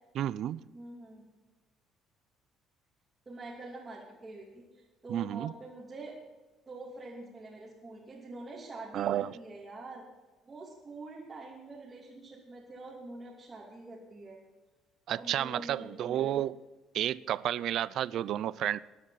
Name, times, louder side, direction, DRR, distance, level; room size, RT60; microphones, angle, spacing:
voice 1, 0.1-0.6 5.1-5.5 8.9-9.3 15.1-16.6 16.9-18.8, right 11 dB, 50° right, 0.4 m, -31 dB
voice 2, 0.7-1.2 3.3-6.2 6.7-10.0 10.5-14.4 15.1-16.5, right 2 dB, 15° right, 2.8 m, -45 dB
19.0 x 11.0 x 4.2 m
cardioid pair, 170°, 0 cm